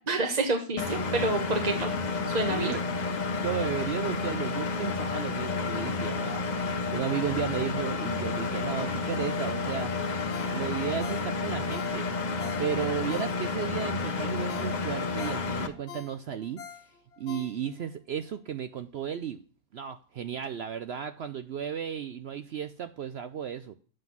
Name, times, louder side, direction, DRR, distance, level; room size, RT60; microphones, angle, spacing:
voice 1, 0.1-1.9 2.3-2.7, right 2 dB, 30° right, 4 dB, 0.9 m, -28 dB
Engine, 0.8-15.7, left 4 dB, 35° left, 0.7 m, -31 dB
voice 2, 2.5-2.8 3.4-9.9 10.5-12.1 12.6-16.6 17.2-19.4 19.7-23.7, right 9 dB, 75° right, 11 dB, 0.5 m, -34 dB
Ringtone, 10.3-13.8 14.2-14.3 14.5-17.9 18.3-18.4, left 7 dB, 70° left, 1.6 m, -46 dB
7.7 x 6.0 x 7.3 m, 0.41 s
omnidirectional pair, 1.7 m